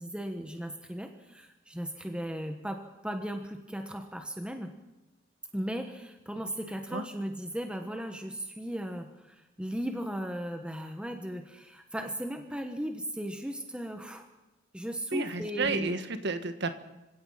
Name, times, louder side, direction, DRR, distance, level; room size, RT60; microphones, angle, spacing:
voice 1, 0.0-4.7 5.5-14.3 14.7-16.0, equal, 5° right, 5 dB, 1.3 m, -37 dB
voice 2, 15.1-16.7, right 3 dB, 60° right, 9 dB, 1.6 m, -31 dB
26.5 x 16.5 x 5.8 m, 1.0 s
head